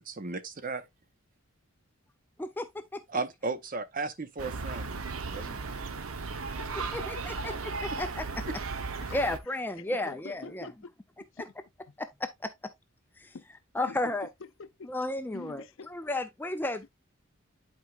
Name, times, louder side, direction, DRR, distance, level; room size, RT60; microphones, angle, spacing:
voice 1, 0.0-0.9 3.1-4.9 5.3-5.6, right 3 dB, 40° right, 0.8 m, -35 dB
voice 2, 2.4-3.0 6.9-7.5 8.0-8.2 9.1-10.7 11.4-11.5 12.0-12.5 13.2-13.3 13.7-14.3 14.9-16.9, left 2 dB, 10° left, 0.4 m, -33 dB
sound 1, 4.4-9.4, right 4 dB, 85° right, 0.8 m, -36 dB
voice 3, 6.6-7.6 8.4-8.6 9.0-9.2 9.5-10.9 11.3-11.5 13.3-13.4 13.8-14.9 15.3-15.9, left 4 dB, 65° left, 0.5 m, -46 dB
11.0 x 4.6 x 2.4 m
head